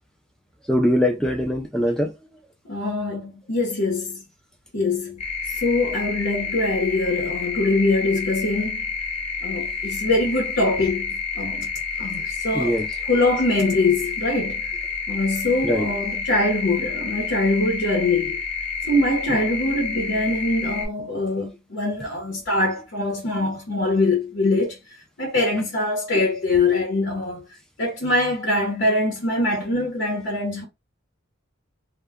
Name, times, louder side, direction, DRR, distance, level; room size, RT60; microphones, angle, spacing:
voice 1, 0.7-2.1 12.5-13.0 15.6-15.9 20.0-20.1, equal, 5° left, 0.4 m, -22 dB
voice 2, 2.6-4.2 4.7-5.2 5.5-8.9 9.4-11.7 12.0-14.7 15.1-18.4 18.9-24.8 25.2-27.4 27.8-30.7, left 2 dB, 65° left, 0.8 m, -23 dB
sound 1, 5.2-20.9, left 5 dB, 30° left, 0.9 m, -29 dB
2.2 x 2.2 x 3.4 m
head